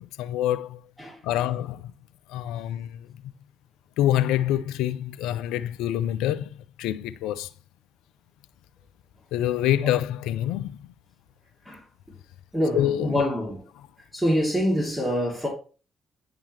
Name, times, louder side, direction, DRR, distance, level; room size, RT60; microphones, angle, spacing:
voice 1, 0.0-0.8 1.2-1.9 2.3-3.2 4.0-7.5 9.3-10.9 12.7-13.2, left 12 dB, 75° left, 0.4 m, -26 dB
voice 2, 1.0-1.5 11.6-11.8 12.5-13.6 14.1-15.5, equal, 10° right, 2.5 m, -26 dB
9.7 x 3.7 x 3.1 m
hypercardioid pair, 45°, 0 cm